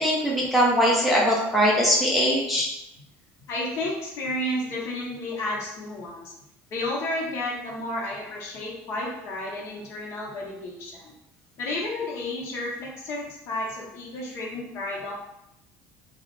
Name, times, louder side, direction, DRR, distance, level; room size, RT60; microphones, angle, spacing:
voice 1, 0.0-2.7, equal, ahead, -5 dB, 0.4 m, -21 dB
voice 2, 3.5-6.3 6.7-11.1 11.6-15.1, left 1 dB, 50° left, -2 dB, 0.7 m, -32 dB
2.4 x 2.0 x 3.0 m, 0.85 s
cardioid pair, 145°, 6 cm